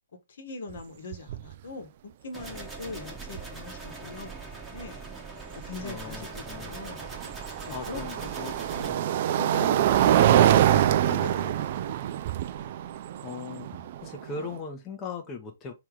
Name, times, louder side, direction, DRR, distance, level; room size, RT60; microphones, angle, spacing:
voice 1, 0.3-4.3 4.7-5.0 5.5-7.1 7.7-8.3 8.7-9.0 9.4-10.3 10.7-11.9 12.6-12.7, left 3 dB, 60° left, 1.3 m, -42 dB
sound 1, 0.7-0.8 1.1-1.5 3.4-3.5 6.5-14.6, right 11 dB, 45° right, 0.4 m, -24 dB
sound 2, 2.3-8.9, right 4 dB, 5° right, 1.1 m, -41 dB
voice 2, 5.8-6.8 7.7-8.6 8.9-9.7 10.0-11.3 13.2-15.7, left 5 dB, 20° left, 0.9 m, -40 dB
3.5 x 3.0 x 4.8 m
hypercardioid pair, 140°, 0 cm